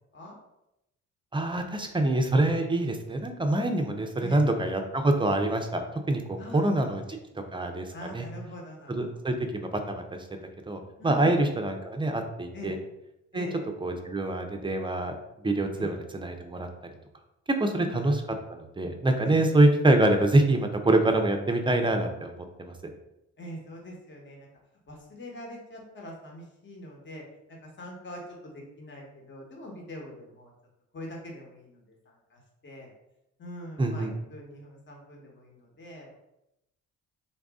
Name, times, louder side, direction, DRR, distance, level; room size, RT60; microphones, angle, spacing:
voice 1, 1.3-7.0 7.5-8.3 8.9-10.2 10.7-12.8 13.3-13.5 13.8-15.1 15.4-16.7 17.6-18.2 18.5-22.7 33.8-34.1, right 2 dB, 15° right, 5 dB, 0.5 m, -25 dB
voice 2, 4.2-4.5 6.4-7.0 7.3-7.5 7.9-9.3 11.0-11.5 12.5-12.8 13.3-13.6 15.7-15.9 17.6-17.9 19.2-19.7 23.4-24.5 24.9-27.2 27.5-30.5 30.9-32.9 33.4-36.1, left 1 dB, 40° left, 0 dB, 1.2 m, -44 dB
4.0 x 2.5 x 3.5 m, 0.87 s
cardioid pair, 90°, 30 cm